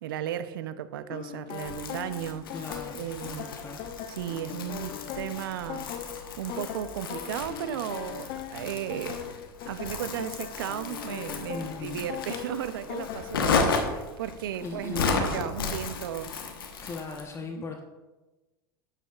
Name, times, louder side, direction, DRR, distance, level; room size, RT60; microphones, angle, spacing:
voice 1, 0.0-2.4 2.9-3.5 4.1-5.9 6.4-9.3 9.7-16.4 17.6-17.7, right 10 dB, 80° right, 0.5 m, -35 dB
sound 1, 1.1-13.9, left 10 dB, 55° left, 0.7 m, -40 dB
Crumpling crinkling, 1.5-17.3, left 4 dB, 90° left, 1.0 m, -34 dB
voice 2, 2.5-3.9 11.5-12.1 14.6-15.4 16.8-17.8, left 4 dB, 25° left, 0.9 m, -38 dB
9.0 x 7.6 x 2.4 m
hypercardioid pair, 100°, 12 cm